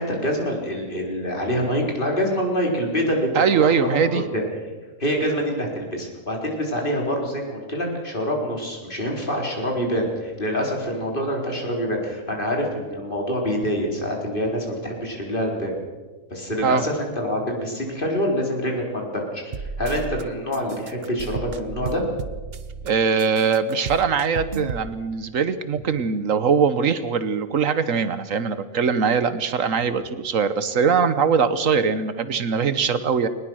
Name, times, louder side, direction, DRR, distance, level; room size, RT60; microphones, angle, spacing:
voice 1, 0.0-4.4 5.0-15.7 16.3-22.0, equal, 40° left, 0 dB, 4.4 m, -26 dB
voice 2, 3.3-4.2 16.6-16.8 22.8-33.3, right 6 dB, 75° right, 13 dB, 1.4 m, -21 dB
sound 1, 19.5-20.2 20.5-22.9 23.2-24.9, right 4 dB, 50° right, 1.2 m, -33 dB
22.0 x 20.0 x 6.3 m, 1.3 s
omnidirectional pair, 1.4 m